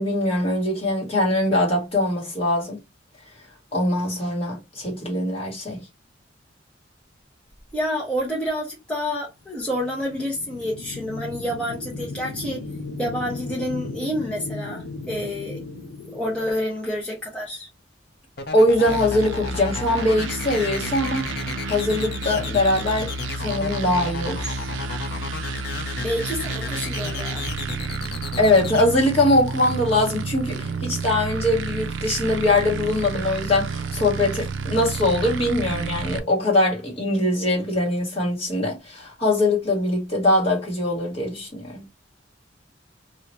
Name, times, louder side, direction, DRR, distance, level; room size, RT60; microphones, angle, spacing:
voice 1, 0.0-2.8 3.7-5.8 18.5-21.3 21.7-23.1 23.4-24.6 28.4-41.8, left 1 dB, 30° left, 1.6 m, -22 dB
voice 2, 7.7-12.6 13.0-15.6 16.1-17.7 26.0-27.4, equal, 5° left, 0.9 m, -28 dB
sound 1, 9.6-17.3, left 3 dB, 85° left, 0.8 m, -36 dB
sound 2, 18.4-28.8, left 4 dB, 55° left, 0.6 m, -33 dB
sound 3, 18.9-36.2, right 3 dB, 80° right, 0.4 m, -30 dB
3.2 x 2.7 x 2.9 m
head